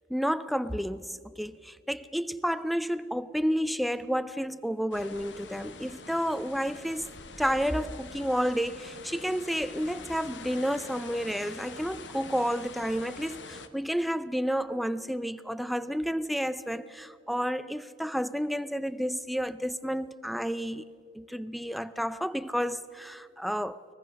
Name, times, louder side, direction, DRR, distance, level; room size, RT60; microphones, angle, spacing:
voice 1, 0.1-20.8 21.1-23.8, equal, ahead, 0.4 m, -31 dB
sound 1, 4.9-13.7, left 4 dB, 80° left, 1.2 m, -45 dB
23.5 x 20.0 x 6.3 m
head